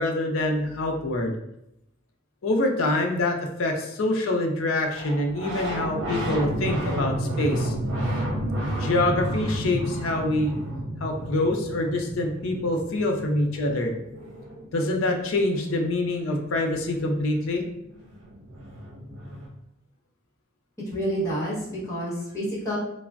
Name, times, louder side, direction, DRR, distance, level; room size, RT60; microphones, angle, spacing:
voice 1, 0.0-1.3 2.4-7.7 8.8-10.6 11.0-13.9 14.7-17.6, left 2 dB, 65° left, 2 dB, 0.5 m, -25 dB
sound 1, 4.9-15.3 17.4-17.5 17.7-19.5, right 1 dB, 75° right, 0.8 m, -31 dB
voice 2, 20.9-22.8, equal, 15° left, -8 dB, 1.0 m, -29 dB
3.2 x 2.0 x 2.4 m, 0.80 s
head